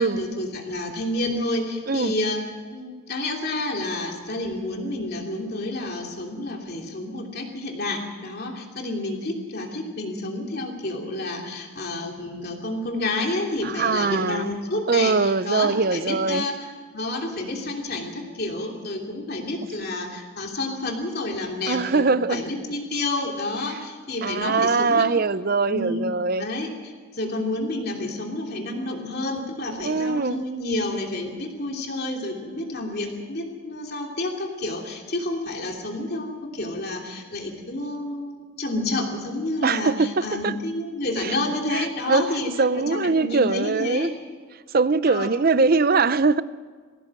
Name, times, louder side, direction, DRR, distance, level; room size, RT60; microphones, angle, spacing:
voice 1, 0.0-2.4 2.7-25.2 25.7-26.0 26.4-44.1 45.1-45.7, left 2 dB, 45° left, 1 dB, 3.1 m, -29 dB
voice 2, 13.6-14.5 14.9-16.5 21.7-22.4 23.7-23.8 24.2-26.5 29.8-30.4 39.6-40.5 41.2-41.4 41.7-42.2 42.6-44.1 44.7-46.4, right 4 dB, 45° right, 15 dB, 0.6 m, -22 dB
21.0 x 16.0 x 7.7 m, 1.6 s
head